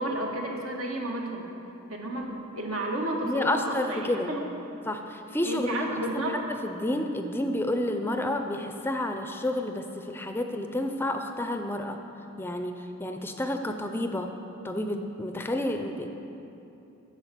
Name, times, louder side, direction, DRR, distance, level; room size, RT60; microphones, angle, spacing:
voice 1, 0.0-1.5 1.9-4.4 5.4-6.5, right 1 dB, 80° right, 0 dB, 1.4 m, -32 dB
voice 2, 3.2-4.3 4.9-5.7 6.1-6.2 6.6-12.0 12.4-14.3 14.6-16.1, left 1 dB, 10° left, 5 dB, 0.4 m, -30 dB
9.6 x 6.5 x 7.4 m, 2.9 s
head